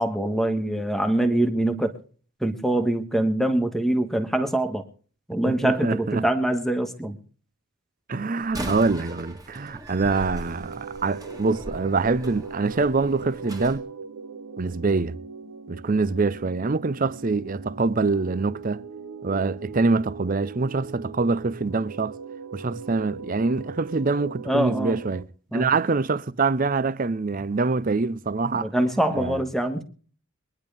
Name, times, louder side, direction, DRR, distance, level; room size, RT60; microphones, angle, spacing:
voice 1, 0.0-1.9 2.4-4.8 5.3-7.2 24.4-25.0 25.5-25.7 28.5-29.8, right 1 dB, ahead, 1.4 m, -24 dB
voice 2, 5.5-6.2 8.1-13.9 14.6-15.2 15.7-18.8 19.2-22.2 22.5-25.3 25.5-28.7 29.1-29.4, right 3 dB, 40° right, 0.5 m, -25 dB
Slam, 8.4-13.8, right 1 dB, 15° right, 2.1 m, -39 dB
sound 1, 10.2-25.2, right 5 dB, 70° right, 1.0 m, -40 dB
23.0 x 10.5 x 3.5 m
head